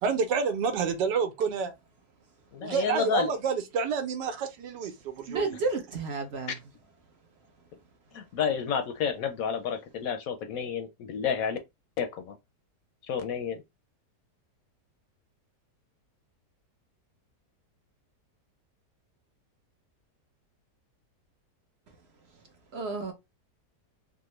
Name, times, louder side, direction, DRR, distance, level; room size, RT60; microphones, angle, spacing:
voice 1, 0.0-1.7 2.6-5.6, right 6 dB, 85° right, 1.4 m, -29 dB
voice 2, 2.5-3.3 8.1-11.6 12.0-12.4 13.0-13.6, left 7 dB, 70° left, 0.9 m, -30 dB
voice 3, 5.3-6.6 22.7-23.1, right 3 dB, 70° right, 0.6 m, -31 dB
3.6 x 2.0 x 3.0 m
omnidirectional pair, 1.8 m